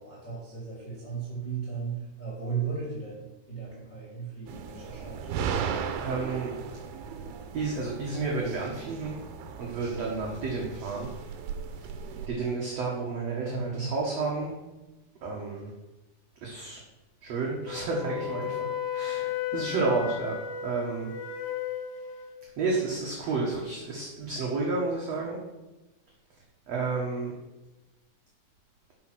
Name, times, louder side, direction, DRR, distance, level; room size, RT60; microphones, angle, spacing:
voice 1, 0.0-5.3 13.4-13.9, right 6 dB, 10° left, -7 dB, 2.7 m, -36 dB
sound 1, 4.5-12.3, right 6 dB, 75° right, 2.6 m, -36 dB
voice 2, 6.0-6.5 7.5-9.2 9.6-11.1 11.8-11.9 12.3-14.5 15.2-15.7 16.4-16.8 17.2-20.4 20.6-21.1 22.6-25.4 26.7-27.3, right 3 dB, 55° right, -3 dB, 2.1 m, -31 dB
Wind instrument woodwind instrument, 17.7-22.4, left 8 dB, 70° left, 2.3 m, -34 dB
12.0 x 5.2 x 6.2 m, 1.0 s
omnidirectional pair, 4.6 m